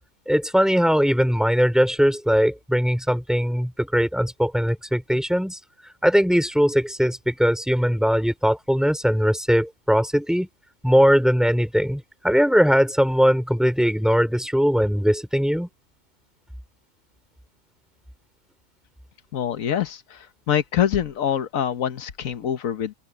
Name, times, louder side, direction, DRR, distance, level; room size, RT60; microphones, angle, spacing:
voice 1, 0.3-5.6 6.0-10.5 10.8-15.7, equal, ahead, 3.4 m, -20 dB
voice 2, 19.3-20.0 20.5-22.9, left 9 dB, 90° left, 1.4 m, -24 dB
open air
omnidirectional pair, 1.4 m